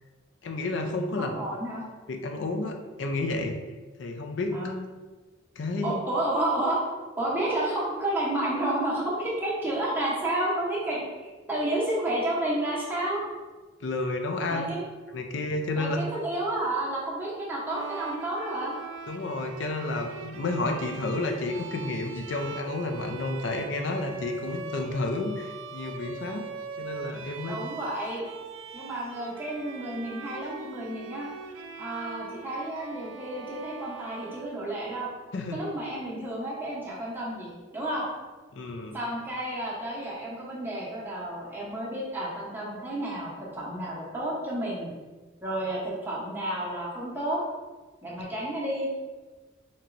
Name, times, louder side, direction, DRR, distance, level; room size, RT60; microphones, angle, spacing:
voice 1, 0.4-1.3 2.1-3.6 4.0-4.6 5.6-6.0 13.8-14.7 15.1-16.0 19.1-26.4 26.8-27.6 35.3-35.6 38.5-39.0, left 2 dB, 65° left, 4 dB, 0.4 m, -31 dB
voice 2, 1.1-1.8 4.5-4.8 5.8-6.8 7.2-13.2 14.5-14.8 15.8-18.7 27.5-28.2 28.7-31.3 31.8-35.1 35.5-38.1 38.9-44.9 45.4-47.4 48.0-48.9, right 1 dB, 10° right, -6 dB, 0.9 m, -31 dB
Bowed string instrument, 17.7-35.1, right 4 dB, 80° right, 0.3 m, -42 dB
4.4 x 2.9 x 2.5 m, 1.3 s
head